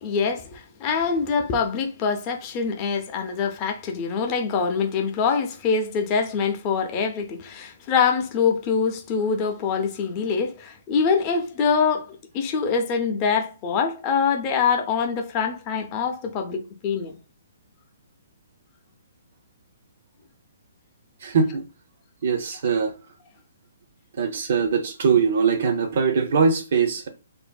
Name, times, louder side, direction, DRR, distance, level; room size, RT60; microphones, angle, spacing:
voice 1, 0.0-17.2, left 5 dB, 30° left, 0.5 m, -24 dB
voice 2, 21.2-21.6 22.2-23.0 24.1-27.1, right 5 dB, 60° right, 0.4 m, -22 dB
2.5 x 2.5 x 2.2 m
hypercardioid pair, 155°, 0 cm